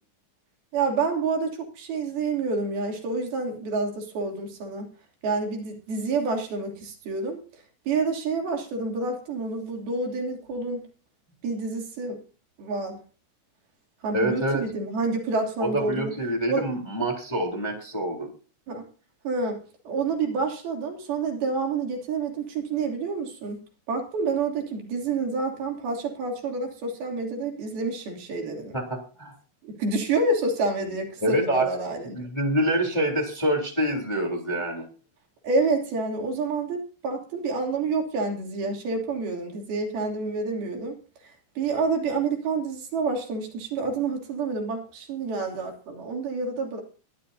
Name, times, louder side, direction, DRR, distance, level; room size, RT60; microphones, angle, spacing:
voice 1, 0.7-4.9 5.2-7.4 7.9-10.8 11.4-12.2 12.6-13.0 14.0-16.1 16.5-16.6 18.7-18.9 19.2-28.8 29.6-32.1 35.4-41.0 41.6-46.8, right 3 dB, 80° right, 1 dB, 4.9 m, -28 dB
voice 2, 14.1-14.6 15.6-18.3 28.7-29.3 31.2-31.7 32.0-34.9, right 1 dB, 10° left, 1 dB, 2.9 m, -26 dB
22.5 x 13.0 x 2.8 m, 0.37 s
omnidirectional pair, 4.3 m